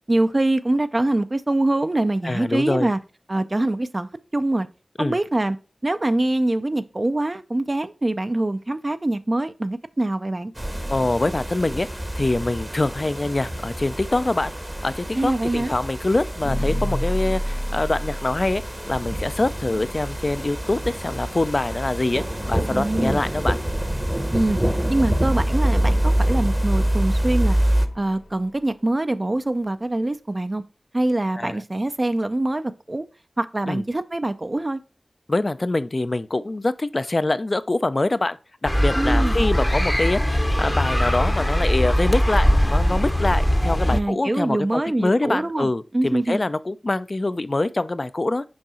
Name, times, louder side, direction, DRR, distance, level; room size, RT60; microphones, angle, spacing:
voice 1, 0.1-3.0 3.3-4.1 4.3-4.7 5.0-5.6 5.8-10.5 15.1-15.7 22.7-23.2 24.3-24.6 24.9-27.6 28.0-30.6 30.9-33.0 33.4-34.8 39.0-39.4 43.9-46.4, right 1 dB, 35° right, 0.5 m, -24 dB
voice 2, 2.2-2.9 5.0-5.2 10.9-11.9 12.1-14.5 14.8-18.6 18.9-23.6 31.4-31.6 33.7-33.8 35.3-38.4 38.6-48.4, left 2 dB, 45° left, 0.4 m, -24 dB
sound 1, 10.6-27.9, right 1 dB, 15° right, 0.8 m, -26 dB
sound 2, 16.4-28.6, equal, 80° left, 0.9 m, -33 dB
sound 3, 38.7-44.0, equal, 10° left, 0.7 m, -20 dB
6.3 x 4.6 x 4.2 m
wide cardioid pair, 60°, 0 cm